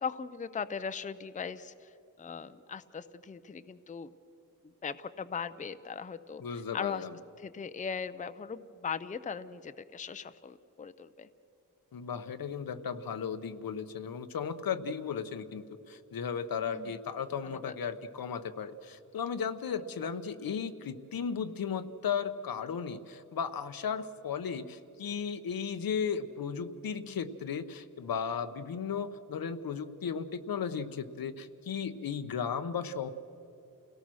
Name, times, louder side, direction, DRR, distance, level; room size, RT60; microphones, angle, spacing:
voice 1, 0.0-1.7 2.2-4.1 4.8-6.4 6.7-7.0 7.4-11.3 16.6-16.9 17.4-17.7 20.0-20.1, left 6 dB, 25° left, 12 dB, 0.5 m, -39 dB
voice 2, 6.4-7.2 11.9-33.1, left 6 dB, 85° left, 10 dB, 1.0 m, -35 dB
29.5 x 17.5 x 6.3 m, 2.9 s
wide cardioid pair, 175°, 34 cm